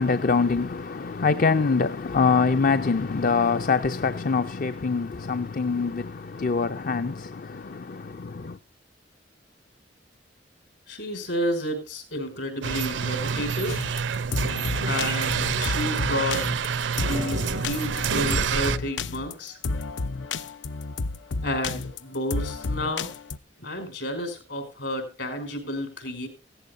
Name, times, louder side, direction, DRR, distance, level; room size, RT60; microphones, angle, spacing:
voice 1, 0.0-8.6, left 4 dB, 50° left, 0.5 m, -24 dB
voice 2, 10.9-13.8 14.8-16.6 17.0-19.6 21.4-23.1 23.6-26.3, equal, 70° left, 5.1 m, -31 dB
sound 1, 12.6-18.8, right 6 dB, 80° right, 0.7 m, -27 dB
sound 2, 13.7-23.4, left 3 dB, 90° left, 0.7 m, -31 dB
16.5 x 14.5 x 2.6 m
head